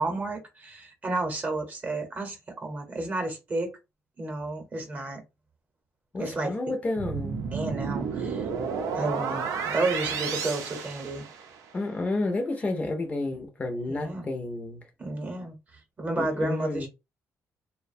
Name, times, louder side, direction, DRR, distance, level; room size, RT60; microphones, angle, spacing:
voice 1, 0.0-3.7 4.2-5.2 6.2-6.5 7.5-8.4 8.9-11.2 13.9-14.3 15.0-15.6 16.0-16.9, right 2 dB, 30° right, 0.8 m, -31 dB
voice 2, 6.1-7.4 11.7-14.8 16.1-16.9, left 2 dB, 25° left, 0.5 m, -30 dB
sound 1, 7.0-11.7, right 6 dB, 85° right, 0.5 m, -32 dB
2.5 x 2.1 x 2.6 m
cardioid pair, 120°, 5 cm